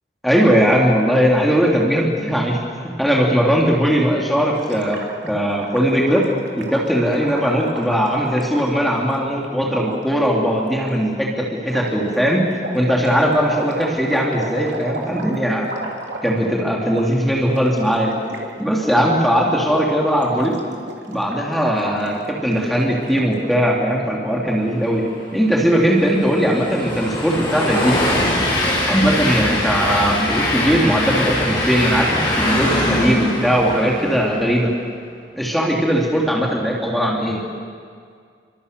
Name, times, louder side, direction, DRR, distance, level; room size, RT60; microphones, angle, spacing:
voice 1, 0.2-2.6 2.8-6.2 6.5-15.9 16.2-18.1 18.6-20.5 21.1-25.0 25.3-28.2 28.9-34.7 35.4-37.4, equal, ahead, -3 dB, 3.1 m, -19 dB
Gurgling, 4.6-9.2 9.8-10.0 10.5-10.9 11.7-16.6 16.9-17.1 17.3-18.5 18.8-19.0 19.3-19.9 20.1-23.6, right 2 dB, 85° right, 3.5 m, -34 dB
Train, 25.2-34.6, left 1 dB, 25° left, 6.6 m, -22 dB
29.5 x 24.5 x 6.9 m, 2.1 s
head